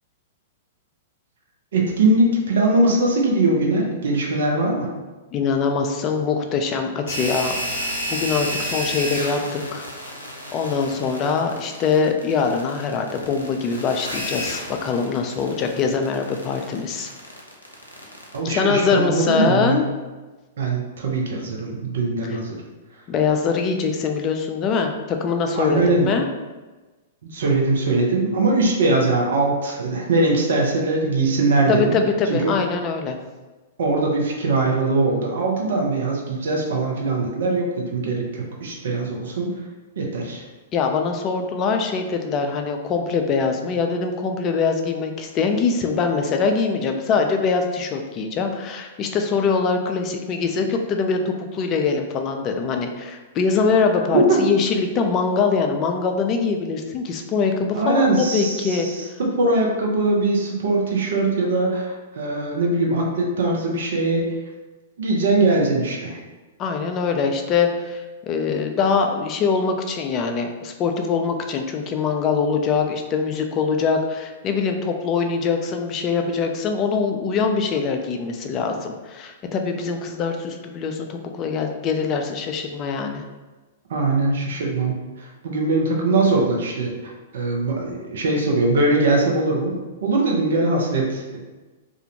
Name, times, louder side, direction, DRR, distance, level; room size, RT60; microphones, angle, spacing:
voice 1, 1.7-4.9 18.3-19.8 20.6-22.6 25.6-26.1 27.2-32.0 32.3-32.5 33.8-39.5 40.0-40.4 54.1-54.4 57.7-64.2 65.0-66.2 83.9-89.7 90.0-91.4, right 2 dB, 60° right, -1 dB, 0.5 m, -21 dB
voice 2, 5.3-9.9 10.5-17.1 18.4-19.8 22.3-22.4 23.1-26.3 31.7-33.2 40.7-59.1 66.6-83.2, left 5 dB, 30° left, 4 dB, 0.3 m, -23 dB
sound 1, 7.1-18.4, equal, 90° left, 0.5 m, -31 dB
2.4 x 2.1 x 2.7 m, 1.2 s
figure-of-eight pair, 105°, 0 cm